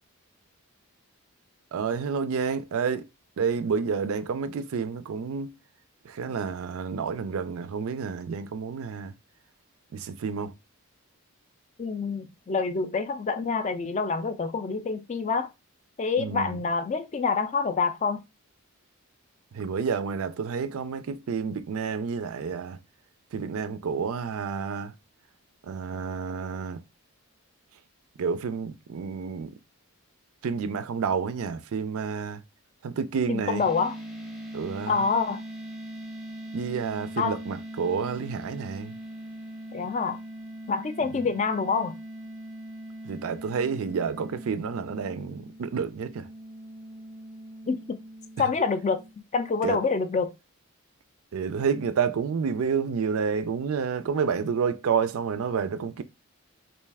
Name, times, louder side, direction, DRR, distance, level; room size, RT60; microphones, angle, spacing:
voice 1, 1.7-3.1 3.4-5.5 6.1-9.1 9.9-10.5 16.2-16.5 19.5-22.8 23.3-24.9 25.7-26.8 28.2-29.5 30.4-32.4 32.8-33.6 34.5-35.0 36.5-38.9 43.1-46.3 49.6-49.8 51.3-56.0, right 6 dB, 70° right, 0.4 m, -29 dB
voice 2, 11.8-15.5 16.0-18.2 33.3-34.0 34.9-35.4 37.2-37.4 39.7-40.2 40.7-41.9 47.7-48.0 48.4-49.0 49.3-50.3, left 4 dB, 30° left, 0.3 m, -27 dB
sound 1, 33.6-49.1, right 1 dB, ahead, 0.6 m, -41 dB
3.2 x 2.6 x 3.4 m
head